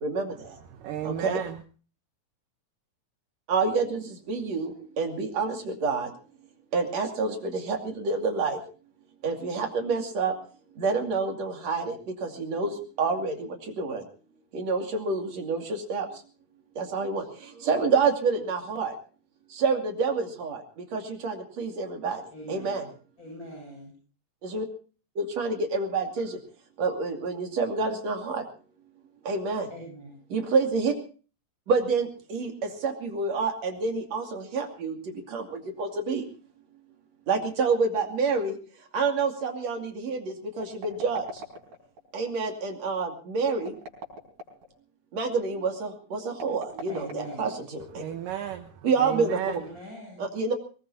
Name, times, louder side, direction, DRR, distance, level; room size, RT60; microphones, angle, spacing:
voice 1, 0.0-0.3 1.1-1.4 3.5-4.0 4.3-6.1 6.7-8.6 9.2-10.3 10.8-12.0 12.2-12.7 13.0-13.3 13.8-14.0 14.5-16.1 16.8-17.2 17.6-18.9 19.6-20.6 20.9-22.2 22.5-22.8 24.4-24.7 25.2-26.3 26.8-28.4 29.3-29.7 30.3-30.9 31.7-32.5 32.8-34.9 35.3-35.4 35.8-36.2 37.3-38.5 38.9-40.2 40.6-41.2 42.1-43.7 45.1-47.8 48.8-49.4 50.2-50.5, right 4 dB, 50° right, 3.5 m, -27 dB
voice 2, 0.7-1.6 48.0-48.7 49.0-49.6, right 10 dB, 75° right, 2.6 m, -33 dB
voice 3, 22.3-22.9 23.2-24.0 29.7-30.2 46.9-47.7 49.6-50.3, equal, 20° left, 8.5 m, -42 dB
sound 1, 40.6-42.0 43.6-44.7 46.3-47.9, left 1 dB, 90° right, 6.3 m, -42 dB
24.0 x 19.5 x 2.7 m
omnidirectional pair, 4.1 m